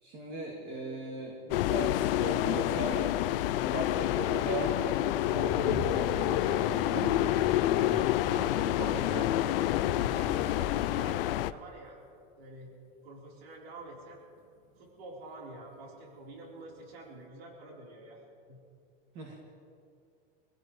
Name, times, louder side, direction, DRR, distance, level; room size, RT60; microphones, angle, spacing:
voice 1, 0.0-3.2 3.5-7.2 7.7-8.1 8.4-8.5 8.8-9.3 19.1-19.3, right 2 dB, 35° right, -1 dB, 2.3 m, -38 dB
sound 1, 1.5-11.5, left 14 dB, 65° left, 0.6 m, -28 dB
sound 2, 5.3-17.3, right 2 dB, 50° right, 2.1 m, -48 dB
sound 3, 5.5-11.1, left 1 dB, ahead, 0.7 m, -44 dB
voice 2, 7.9-9.2 10.1-12.0 12.4-12.7 13.0-14.2 14.8-18.6 19.3-19.4, right 2 dB, 85° right, -2 dB, 4.1 m, -48 dB
26.0 x 16.5 x 3.2 m, 2.4 s
supercardioid pair, 160°, 30 cm